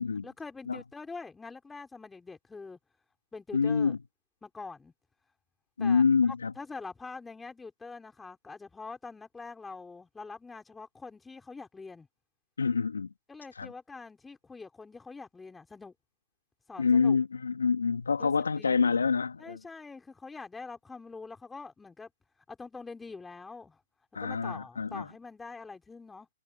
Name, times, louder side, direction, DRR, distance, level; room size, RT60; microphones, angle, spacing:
voice 1, 0.2-2.8 3.3-4.0 4.4-4.9 5.8-12.1 13.3-15.9 16.7-17.2 18.2-19.0 19.4-22.1 22.5-23.8 24.2-26.3, left 4 dB, 5° left, 4.7 m, -44 dB
voice 2, 3.5-4.0 5.8-6.5 12.6-13.1 13.6-13.7 16.8-19.6 24.1-25.0, left 5 dB, 80° left, 2.7 m, -26 dB
hypercardioid pair, 135°, 0 cm